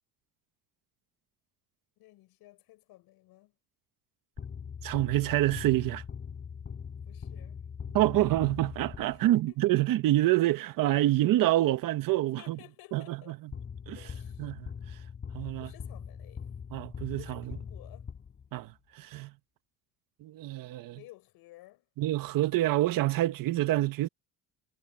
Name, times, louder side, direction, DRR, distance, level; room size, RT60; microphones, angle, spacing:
voice 1, 2.0-3.5 7.1-7.6 9.1-9.6 12.4-13.4 14.0-14.5 15.6-16.5 17.2-18.1 20.9-21.8, left 18 dB, 70° left, 5.6 m, -54 dB
sound 1, 4.4-9.5 13.5-18.7, left 6 dB, 30° left, 5.5 m, -42 dB
voice 2, 4.8-6.0 7.9-12.6 12.9-13.5 13.9-14.1 14.4-15.0 15.3-15.7 16.7-17.6 18.5-19.3 20.2-21.0 22.0-24.1, right 15 dB, 60° right, 1.6 m, -27 dB
cardioid pair, 150°, 38 cm